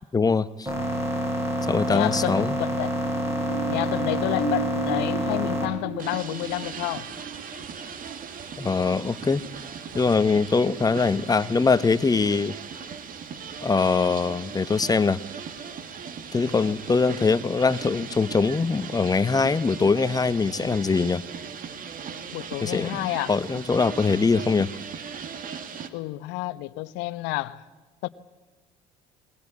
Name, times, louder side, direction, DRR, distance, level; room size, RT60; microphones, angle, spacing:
voice 1, 0.1-0.7 1.7-2.5 8.6-9.4 9.9-12.5 13.6-15.2 16.3-21.2 22.6-24.7, left 4 dB, 20° left, 0.9 m, -22 dB
sound 1, 0.7-5.7, equal, 15° right, 7.0 m, -27 dB
voice 2, 1.9-2.9 3.7-7.1 16.4-16.6 22.3-23.3 25.9-27.6 28.0-28.1, left 18 dB, 75° left, 0.9 m, -30 dB
sound 2, 2.8-9.0 9.4-9.5, right 2 dB, 65° right, 3.3 m, -35 dB
sound 3, 6.0-25.9, right 6 dB, 50° right, 1.9 m, -38 dB
20.5 x 20.0 x 8.5 m
supercardioid pair, 80°, 18 cm